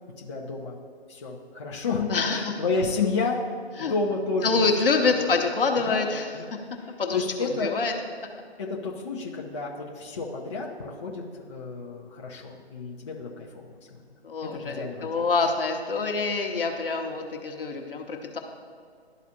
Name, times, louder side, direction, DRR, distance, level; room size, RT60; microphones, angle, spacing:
voice 1, 0.2-0.8 1.1-3.4 3.8-4.7 5.2-5.3 5.8-6.0 6.3-6.5 6.8-7.7 8.6-13.6 14.4-15.2, left 4 dB, 25° left, -3 dB, 0.6 m, -31 dB
voice 2, 2.1-2.6 3.8-3.9 4.4-6.2 7.0-7.9 14.2-18.4, left 4 dB, 60° left, 3 dB, 1.0 m, -26 dB
12.0 x 4.1 x 2.8 m, 2.1 s
figure-of-eight pair, 140°, 32 cm